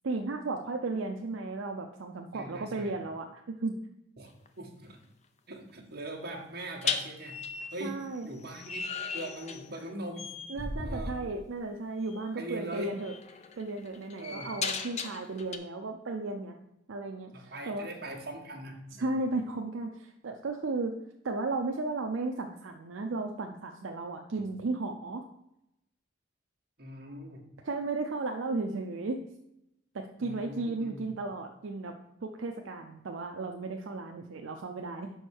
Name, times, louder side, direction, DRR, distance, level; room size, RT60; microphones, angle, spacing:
voice 1, 0.0-3.8 7.8-8.3 10.5-13.1 13.6-16.6 16.9-17.9 19.0-21.0 21.2-25.3 27.6-29.2 29.9-35.1, right 3 dB, 75° right, 4 dB, 0.5 m, -35 dB
voice 2, 2.3-2.9 4.2-4.3 4.6-5.0 5.5-7.4 7.7-8.9 9.1-10.3 10.8-11.2 12.4-12.9 14.2-14.5 17.3-19.2 24.3-24.4 26.8-27.4 30.2-31.1, right 1 dB, 50° right, -1 dB, 1.4 m, -41 dB
sound 1, 4.2-4.5 6.8-9.9 10.2-10.6 12.1-12.3 12.7-15.6, left 5 dB, 35° left, 0.5 m, -37 dB
sound 2, 10.5-11.1, equal, 15° left, 0.9 m, -35 dB
5.5 x 4.6 x 6.2 m, 0.84 s
head